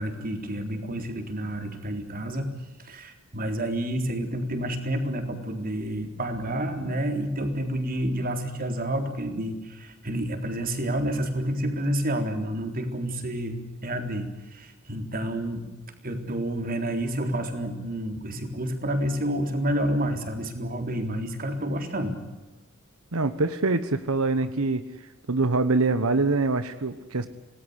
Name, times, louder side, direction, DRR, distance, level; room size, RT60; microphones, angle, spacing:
voice 1, 0.0-2.5 2.8-13.6 13.8-15.6 16.0-22.2, right 1 dB, 45° right, 6 dB, 3.9 m, -29 dB
voice 2, 23.1-24.8 25.3-27.3, right 3 dB, 90° right, 11 dB, 1.2 m, -24 dB
27.0 x 19.0 x 8.2 m, 1.1 s
head